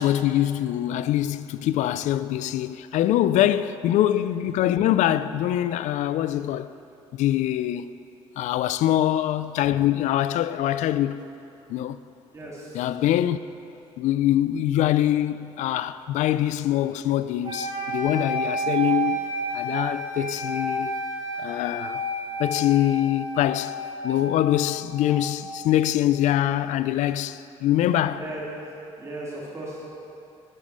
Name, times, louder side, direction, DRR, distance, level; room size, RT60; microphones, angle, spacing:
voice 1, 0.0-6.7 7.1-7.9 8.4-11.2 11.7-12.0 12.7-13.4 14.0-21.0 21.4-22.0 22.4-23.7 24.0-28.2, left 12 dB, 80° left, 0.4 m, -24 dB
voice 2, 3.3-3.7 12.3-12.8 28.1-28.4 29.0-29.9, right 1 dB, 25° right, 2.5 m, -37 dB
sound 1, 17.4-25.5, right 2 dB, 45° right, 2.5 m, -31 dB
12.0 x 7.2 x 6.4 m
cardioid pair, 115°, 12 cm